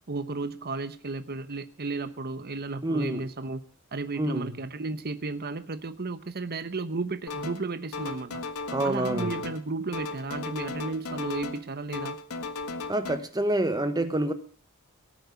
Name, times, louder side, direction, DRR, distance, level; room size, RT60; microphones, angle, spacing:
voice 1, 0.1-3.6 3.9-8.4 8.8-12.2, right 3 dB, 45° right, 11 dB, 1.0 m, -33 dB
voice 2, 2.8-3.3 4.2-4.6 8.7-9.4 12.9-14.3, right 1 dB, 20° right, 10 dB, 1.1 m, -27 dB
sound 1, 7.3-7.7 7.9-9.7 9.9-11.7 11.9-13.2, left 3 dB, 85° left, 1.5 m, -36 dB
18.0 x 8.9 x 7.0 m, 0.40 s
head